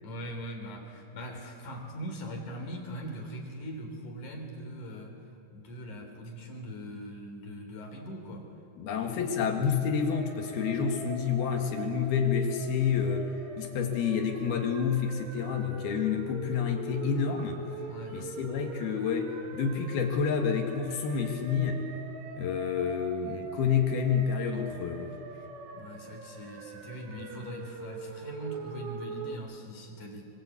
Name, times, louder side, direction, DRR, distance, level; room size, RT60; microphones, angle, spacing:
voice 1, 0.0-5.1 5.5-8.5 8.9-9.0 9.3-9.6 17.9-18.2 25.7-30.2, equal, 45° left, 2 dB, 4.6 m, -41 dB
voice 2, 8.8-13.3 13.6-17.6 18.1-21.9 22.4-25.1, left 6 dB, 65° left, 4 dB, 3.6 m, -29 dB
sound 1, 10.1-29.4, right 4 dB, 90° right, 4.5 m, -43 dB
25.5 x 23.5 x 8.4 m, 2.5 s
omnidirectional pair, 5.2 m